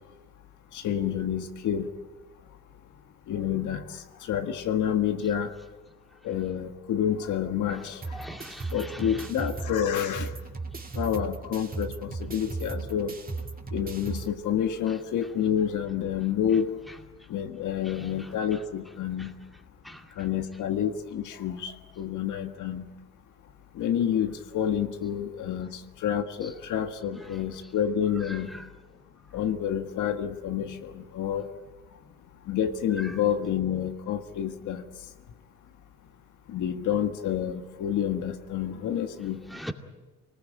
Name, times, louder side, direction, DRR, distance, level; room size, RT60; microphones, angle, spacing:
voice 1, 0.7-1.9 3.3-5.5 6.2-8.0 8.7-10.3 10.9-13.2 13.7-16.7 17.3-19.3 20.2-22.9 23.7-28.5 29.3-31.5 32.5-34.9 36.5-39.4, left 9 dB, 80° left, 1.7 m, -29 dB
sound 1, 8.0-14.3, right 3 dB, 30° right, 2.5 m, -36 dB
voice 2, 8.1-9.3 17.9-18.3 19.2-19.3 19.8-20.1 26.4-26.5 27.1-27.4 28.3-28.7 33.0-33.1 39.5-39.7, equal, ahead, 2.3 m, -42 dB
26.5 x 20.0 x 8.9 m
cardioid pair, 90°, 30 cm